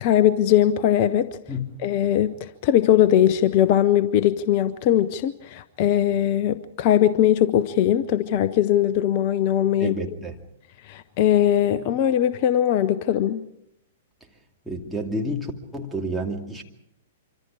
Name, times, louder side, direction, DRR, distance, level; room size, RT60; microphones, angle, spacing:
voice 1, 0.0-1.3 1.8-10.0 10.9-13.4, left 11 dB, 40° left, 15 dB, 0.8 m, -20 dB
voice 2, 9.8-10.4 14.7-16.6, equal, 5° right, -1 dB, 2.6 m, -29 dB
25.5 x 25.5 x 4.9 m, 0.79 s
figure-of-eight pair, 105°, 0 cm